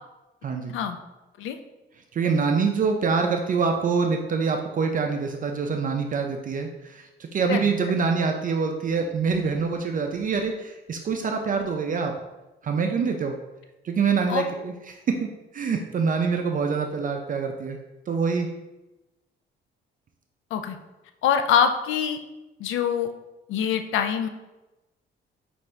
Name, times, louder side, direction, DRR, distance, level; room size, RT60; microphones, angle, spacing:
voice 1, 2.1-12.1 12.6-13.4 13.8-15.2 15.5-17.8 18.1-18.5, right 5 dB, 45° right, 4 dB, 0.5 m, -25 dB
voice 2, 21.2-22.2 22.6-23.1 23.5-24.3, left 8 dB, 85° left, 8 dB, 0.5 m, -24 dB
5.8 x 2.6 x 3.2 m, 1.0 s
cardioid pair, 90°, 20 cm